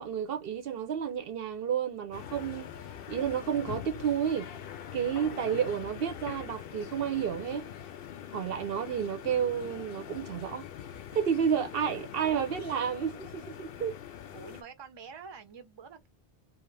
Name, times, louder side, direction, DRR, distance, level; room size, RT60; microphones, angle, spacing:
voice 1, 0.0-2.8 3.1-4.5 4.9-7.7 8.3-10.7 11.1-13.9, right 8 dB, 65° right, 0.8 m, -31 dB
sound 1, 2.1-14.6, left 9 dB, 65° left, 0.7 m, -43 dB
voice 2, 5.5-6.0 11.7-12.4 14.3-16.1, right 6 dB, 30° right, 0.6 m, -48 dB
2.7 x 2.5 x 3.2 m
omnidirectional pair, 1.1 m